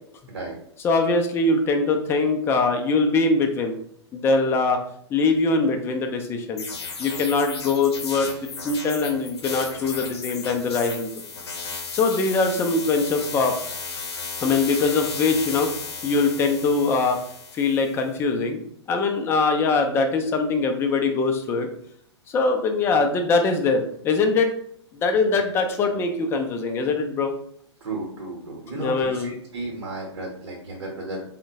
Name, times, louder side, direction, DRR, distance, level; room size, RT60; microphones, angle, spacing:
voice 1, 0.8-3.8 4.1-4.8 5.1-6.6 7.0-8.3 8.6-11.1 11.9-13.5 14.4-15.7 16.0-17.2 17.5-18.6 18.9-21.7 22.3-24.5 24.9-27.3 28.7-29.3, left 3 dB, 15° left, 4 dB, 0.4 m, -22 dB
sound 1, 6.6-18.0, left 4 dB, 60° left, 0.7 m, -34 dB
voice 2, 27.8-31.2, right 2 dB, 55° right, -1 dB, 0.9 m, -33 dB
3.5 x 2.1 x 2.7 m, 0.65 s
figure-of-eight pair, 110°, 15 cm